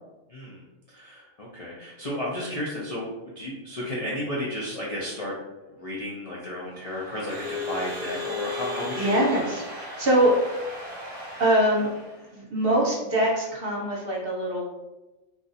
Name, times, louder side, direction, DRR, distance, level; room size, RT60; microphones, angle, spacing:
voice 1, 0.3-5.3 5.8-9.5, left 1 dB, 50° left, -6 dB, 0.4 m, -33 dB
Crowd / Alarm, 6.7-12.3, left 2 dB, 10° right, 1.1 m, -36 dB
voice 2, 9.0-10.3 11.4-11.9 12.3-14.7, right 1 dB, 50° right, -3 dB, 0.9 m, -23 dB
2.5 x 2.4 x 4.0 m, 1.1 s
omnidirectional pair, 1.4 m